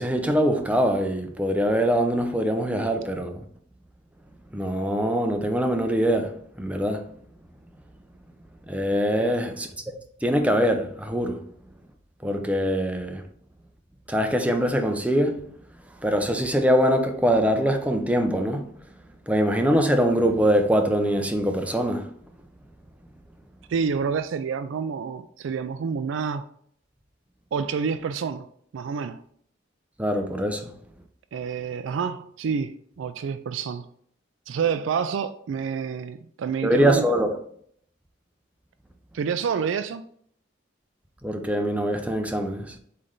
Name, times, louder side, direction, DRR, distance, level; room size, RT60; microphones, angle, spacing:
voice 1, 0.0-3.4 4.5-6.3 6.6-7.1 8.7-9.9 10.2-11.4 12.2-13.2 14.1-15.4 16.0-18.7 19.3-22.1 30.0-30.7 36.6-37.3 41.2-42.7, equal, 5° right, 0.6 m, -23 dB
voice 2, 23.7-26.4 27.5-28.5 28.7-29.2 31.3-33.9 34.5-37.1 39.1-40.0, right 6 dB, 85° right, 0.3 m, -28 dB
7.7 x 3.3 x 3.8 m
head